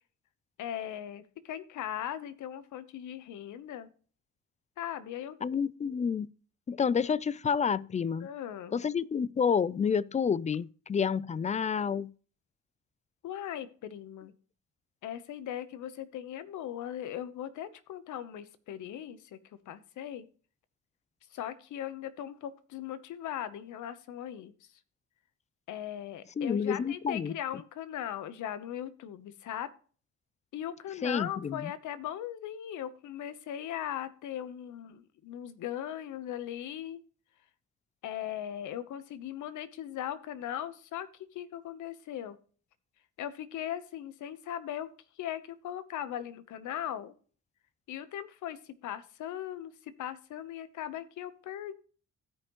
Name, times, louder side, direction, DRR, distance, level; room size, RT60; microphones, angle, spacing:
voice 1, 0.6-3.9 4.8-5.4 8.2-8.7 13.2-14.3 15.0-19.4 19.7-20.2 21.3-24.5 25.7-29.7 30.5-37.0 38.0-42.4 43.2-44.9 45.2-47.1 47.9-51.7, left 11 dB, 80° left, 1.0 m, -39 dB
voice 2, 5.4-6.3 6.7-8.3 8.7-12.1 26.4-27.3 31.0-31.7, left 6 dB, 25° left, 0.4 m, -29 dB
15.5 x 5.4 x 3.0 m
cardioid pair, 90°, 30 cm